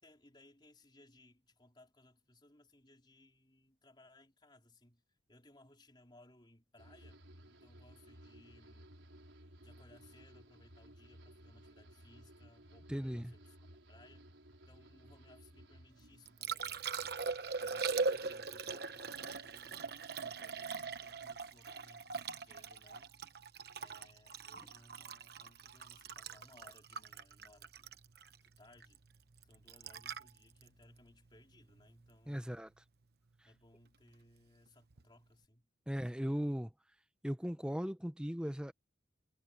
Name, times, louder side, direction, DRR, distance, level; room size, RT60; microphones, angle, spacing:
voice 1, 0.0-8.9 9.6-13.6 13.9-14.3 14.7-17.2 17.5-23.1 23.8-27.9 28.4-29.0 29.4-32.6 33.4-35.7, left 1 dB, 25° left, 3.8 m, -64 dB
sound 1, 6.8-20.1 20.4-21.0, right 1 dB, 90° right, 5.2 m, -59 dB
voice 2, 12.9-13.3 32.3-32.7 35.9-36.7 37.2-38.7, equal, 5° right, 0.9 m, -37 dB
Liquid, 16.0-32.1 34.9-35.0, right 4 dB, 55° right, 1.0 m, -41 dB
head